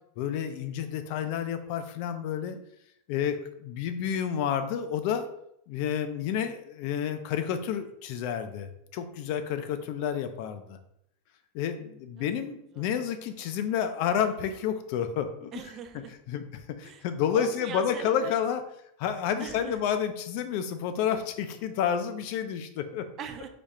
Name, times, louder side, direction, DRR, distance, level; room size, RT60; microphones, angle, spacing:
voice 1, 0.2-2.6 3.1-5.3 5.7-10.8 11.5-15.5 16.3-16.4 16.8-18.6 19.0-23.1, left 8 dB, 50° left, 9 dB, 0.5 m, -30 dB
voice 2, 15.5-16.1 16.8-17.1 17.3-18.3 19.4-19.8 23.2-23.5, right 8 dB, 30° right, 7 dB, 0.5 m, -41 dB
5.1 x 2.4 x 4.2 m, 0.74 s
supercardioid pair, 160°, 0 cm